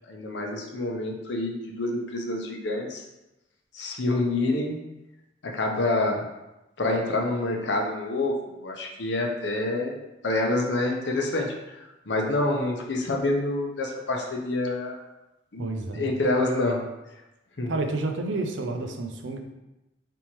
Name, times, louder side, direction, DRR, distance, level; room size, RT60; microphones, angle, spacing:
voice 1, 0.1-3.0 3.7-4.8 5.4-6.3 6.8-10.0 10.2-15.0 15.5-16.8 17.6-17.7, left 2 dB, 70° left, 1 dB, 0.7 m, -27 dB
voice 2, 15.6-16.1 17.7-19.4, right 2 dB, 90° right, 4 dB, 0.6 m, -30 dB
4.3 x 3.5 x 3.0 m, 0.97 s
head